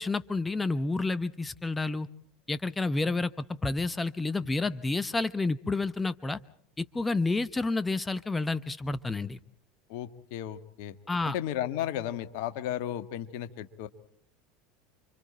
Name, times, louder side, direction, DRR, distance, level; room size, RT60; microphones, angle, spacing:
voice 1, 0.0-2.1 2.5-6.4 6.8-9.4 11.1-11.3, left 3 dB, 15° left, 15 dB, 0.9 m, -30 dB
voice 2, 9.9-11.0 11.2-13.9, left 11 dB, 60° left, 10 dB, 1.6 m, -34 dB
29.5 x 25.5 x 4.4 m, 0.62 s
hypercardioid pair, 80°, 0 cm